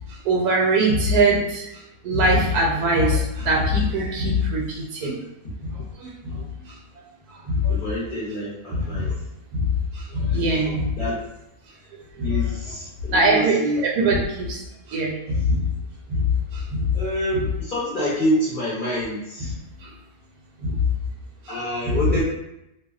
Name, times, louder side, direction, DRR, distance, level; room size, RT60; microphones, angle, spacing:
voice 1, 0.2-1.7 2.0-5.2 6.0-6.4 7.5-7.7 8.7-9.1 9.5-9.7 9.9-10.9 12.2-12.4 13.1-14.6 14.9-15.6 16.2-16.3 16.5-16.9 20.6-20.7 21.5-21.6, right 1 dB, 80° right, -1 dB, 1.1 m, -22 dB
voice 2, 7.7-9.1 11.0-11.2 12.2-13.8 16.9-19.6 21.5-22.2, equal, 50° left, -8 dB, 0.6 m, -26 dB
2.6 x 2.1 x 2.3 m, 0.85 s
omnidirectional pair, 1.7 m